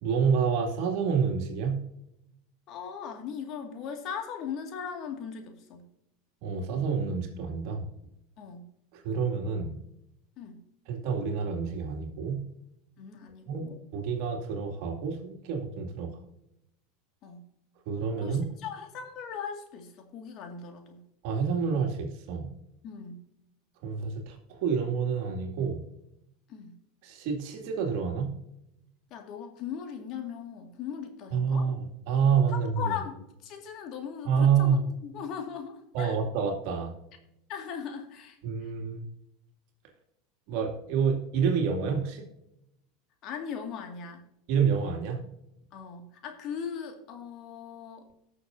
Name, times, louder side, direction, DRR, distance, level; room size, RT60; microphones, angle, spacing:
voice 1, 0.0-1.8 6.4-7.9 8.9-9.8 10.9-12.4 13.5-16.1 17.9-18.5 21.2-22.5 23.8-25.8 27.0-28.3 31.3-32.9 34.2-34.8 35.9-36.9 38.4-39.0 40.5-42.3 44.5-45.2, right 6 dB, 60° right, 3 dB, 2.4 m, -28 dB
voice 2, 2.7-5.9 8.4-8.7 10.4-10.6 13.0-13.7 17.2-17.4 18.2-21.0 22.8-23.2 26.5-26.8 29.1-31.7 32.5-36.2 37.5-38.7 43.2-44.3 45.7-48.1, left 7 dB, 50° left, 4 dB, 2.0 m, -39 dB
19.0 x 6.6 x 2.7 m, 0.83 s
hypercardioid pair, 90°, 0 cm